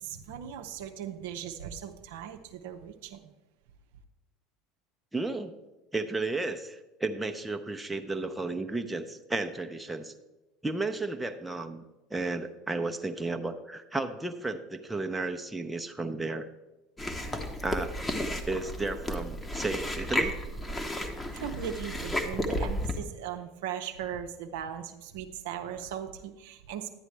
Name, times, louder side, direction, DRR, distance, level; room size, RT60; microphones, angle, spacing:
voice 1, 0.0-3.3 21.3-27.0, right 9 dB, 65° right, 6 dB, 0.6 m, -38 dB
voice 2, 5.1-5.6 5.9-10.1 10.6-11.8 12.1-16.4 17.6-17.9 18.5-20.4, right 2 dB, 10° right, 5 dB, 0.7 m, -33 dB
Chewing mastication, 17.0-23.0, left 1 dB, 15° left, 1.1 m, -33 dB
11.0 x 9.1 x 3.3 m, 1.1 s
figure-of-eight pair, 70°, 0 cm